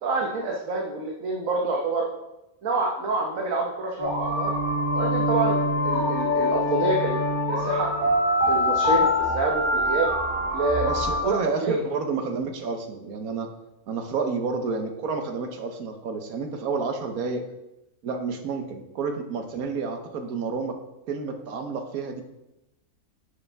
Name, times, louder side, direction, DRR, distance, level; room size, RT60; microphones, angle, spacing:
voice 1, 0.0-2.1 2.6-4.5 4.9-5.6 5.8-7.2 7.5-7.9 8.5-10.1 10.5-11.8, right 3 dB, 70° right, 0 dB, 1.3 m, -27 dB
sound 1, 4.0-11.2, left 1 dB, 30° right, 2.2 m, -24 dB
voice 2, 10.8-13.5 13.9-17.5 18.0-20.8 21.1-22.2, right 4 dB, 90° right, 5 dB, 1.4 m, -30 dB
9.7 x 6.6 x 3.5 m, 0.93 s
omnidirectional pair, 1.5 m